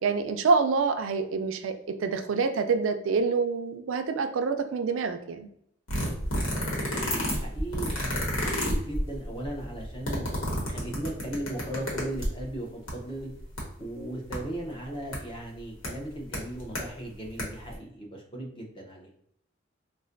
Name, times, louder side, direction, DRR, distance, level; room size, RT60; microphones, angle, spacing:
voice 1, 0.0-1.7 2.0-5.5, right 4 dB, 80° right, 7 dB, 0.4 m, -26 dB
sound 1, 5.9-12.5 12.9-13.0 13.2-13.6 14.3-14.4 15.1-15.2 15.8-15.9 16.3-16.8 17.2-17.4 17.7-17.8, equal, 85° left, 1.2 m, -30 dB
voice 2, 6.4-10.3 10.7-13.3 13.8-19.1, right 1 dB, 25° left, -1 dB, 0.7 m, -37 dB
4.1 x 2.2 x 2.5 m, 0.71 s
head